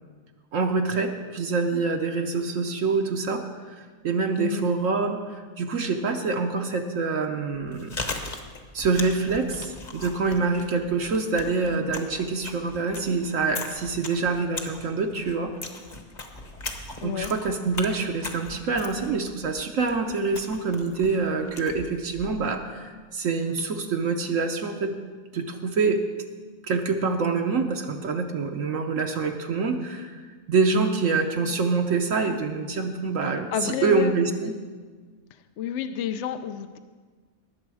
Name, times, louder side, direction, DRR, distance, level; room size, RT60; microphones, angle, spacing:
voice 1, 0.5-3.7 4.0-8.0 8.7-15.5 17.0-24.9 25.3-26.0 26.6-30.2 30.5-34.5, right 4 dB, 65° right, 4 dB, 1.1 m, -26 dB
Chewing mastication, 7.5-22.6, left 3 dB, 35° left, 1.0 m, -39 dB
voice 2, 17.0-17.3 33.3-34.1 35.3-36.8, left 8 dB, 65° left, 9 dB, 0.8 m, -31 dB
19.5 x 7.1 x 4.8 m, 1.5 s
omnidirectional pair, 1.5 m